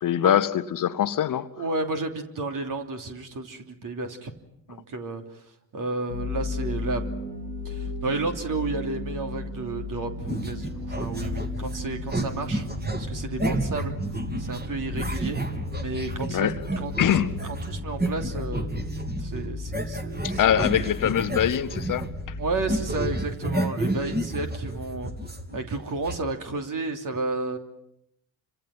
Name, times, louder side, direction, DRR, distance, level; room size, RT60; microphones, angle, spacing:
voice 1, 0.0-1.5 16.3-16.6 17.0-17.4 20.2-22.4, left 10 dB, 45° left, 1.1 m, -23 dB
voice 2, 1.6-4.3 4.7-5.2 5.7-7.3 7.6-10.1 10.4-12.6 13.0-13.9 14.4-15.4 15.8-17.1 17.7-18.7 19.2-20.4 22.4-25.1 25.5-27.6, right 3 dB, 45° right, 3.1 m, -32 dB
sound 1, 6.1-25.4, left 2 dB, 85° right, 4.7 m, -36 dB
sound 2, 10.2-22.3 22.5-26.2, right 1 dB, 20° right, 3.4 m, -31 dB
sound 3, 11.6-23.1, right 4 dB, 70° right, 2.6 m, -43 dB
29.0 x 26.5 x 6.0 m
figure-of-eight pair, 45°, 46 cm